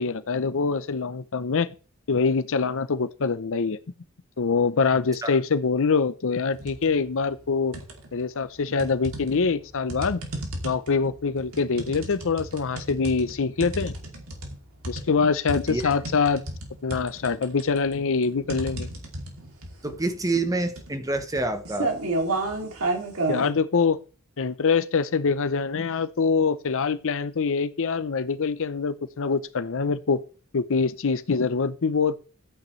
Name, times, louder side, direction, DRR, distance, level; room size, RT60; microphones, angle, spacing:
voice 1, 0.0-1.7 2.1-3.8 4.4-7.8 8.1-10.2 10.6-13.9 14.9-16.4 16.8-18.9 23.3-24.0 24.4-30.2 30.5-32.2, left 5 dB, 65° left, 0.7 m, -24 dB
sound 1, 6.5-6.9 7.3-8.2 8.8-23.5, right 2 dB, 75° right, 2.7 m, -32 dB
voice 2, 19.8-21.9, right 2 dB, 15° right, 1.0 m, -27 dB
13.0 x 9.1 x 3.2 m
head